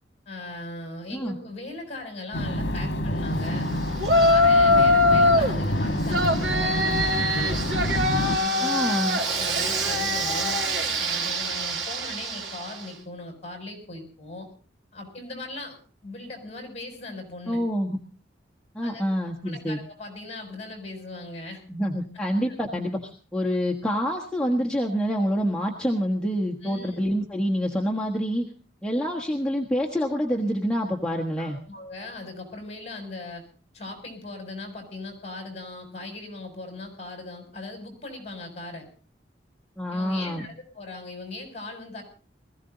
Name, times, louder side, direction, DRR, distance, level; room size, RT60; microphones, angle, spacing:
voice 1, 0.2-3.7 4.2-7.6 8.1-9.0 9.2-10.6 11.0-14.5 14.9-17.6 18.8-19.0 19.4-21.6 22.5-22.6 26.6-27.0 31.4-33.5 33.7-38.9 39.9-42.0, left 2 dB, 35° left, 4 dB, 6.5 m, -39 dB
sound 1, 2.3-8.4, left 1 dB, 70° left, 1.5 m, -27 dB
Yell, 4.0-5.6 6.1-12.8, left 1 dB, 80° right, 3.0 m, -23 dB
voice 2, 8.6-9.2 17.5-18.0 18.7-19.8 21.7-28.5 28.8-31.6 39.8-40.4, equal, 5° left, -2 dB, 1.4 m, -27 dB
21.0 x 15.5 x 4.0 m, 0.38 s
head